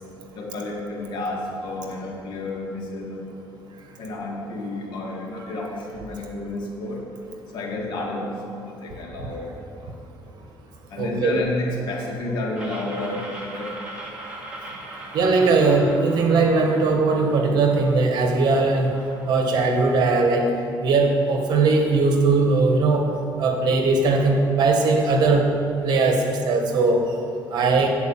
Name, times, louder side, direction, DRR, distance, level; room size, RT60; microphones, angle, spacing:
voice 1, 0.3-3.3 4.0-7.0 7.5-9.9 10.9-13.8, left 2 dB, 65° left, -2 dB, 1.8 m, -31 dB
voice 2, 11.0-11.4 15.1-18.9 19.3-20.5 20.8-23.1 23.4-25.5 25.8-27.0 27.5-27.9, right 3 dB, 60° right, 3 dB, 1.2 m, -19 dB
sound 1, 12.6-20.1, right 1 dB, 15° right, 1.5 m, -40 dB
9.0 x 4.6 x 7.2 m, 2.6 s
cardioid pair, 130°, 8 cm